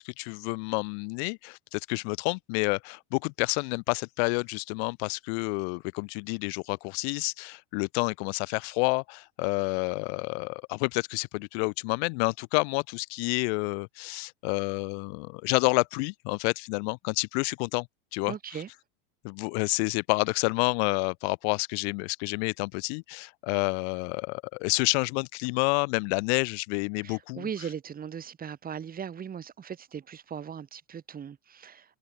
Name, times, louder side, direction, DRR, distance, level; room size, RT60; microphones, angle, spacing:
voice 1, 0.0-17.9 18.1-18.3 19.2-27.4, left 36 dB, 55° left, 0.9 m, -29 dB
voice 2, 18.3-18.7 27.0-32.0, right 8 dB, 25° right, 5.2 m, -38 dB
supercardioid pair, 135°, 38 cm